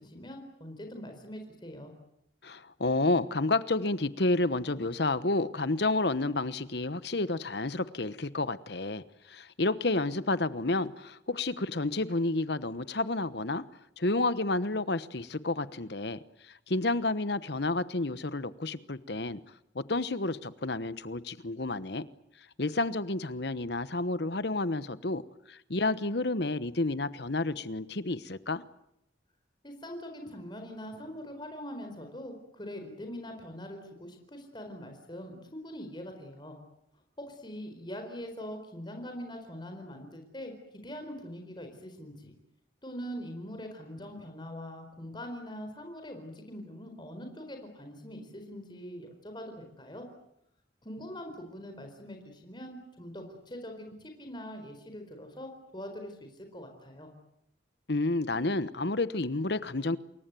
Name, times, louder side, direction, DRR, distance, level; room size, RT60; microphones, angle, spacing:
voice 1, 0.0-1.9 29.6-36.6 37.2-42.3 42.8-50.1 50.8-57.1, equal, 25° left, 4.4 m, -43 dB
voice 2, 2.4-13.6 14.0-19.4 19.7-22.0 22.6-25.2 25.5-28.6 57.9-60.0, left 2 dB, 55° left, 1.1 m, -30 dB
28.5 x 22.0 x 9.2 m
head